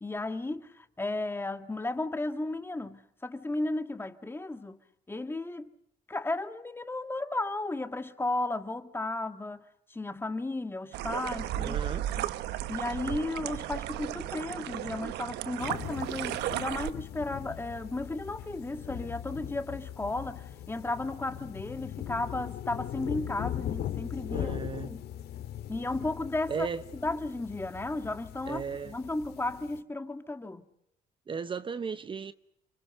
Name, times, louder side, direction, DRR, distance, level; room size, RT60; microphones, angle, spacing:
voice 1, 0.0-4.8 5.1-5.7 6.1-9.6 9.9-11.9 12.2-12.3 12.7-24.5 24.9-25.1 25.7-26.7 26.9-30.7, left 2 dB, 15° left, 1.8 m, -34 dB
sound 1, 10.9-16.9, right 13 dB, 85° right, 1.0 m, -34 dB
voice 2, 11.6-12.1 24.3-24.9 26.5-26.8 28.5-29.0 31.3-32.3, right 6 dB, 30° right, 1.0 m, -35 dB
sound 2, 15.6-29.8, left 11 dB, 70° left, 2.2 m, -40 dB
29.0 x 25.5 x 6.6 m
cardioid pair, 110°, 17 cm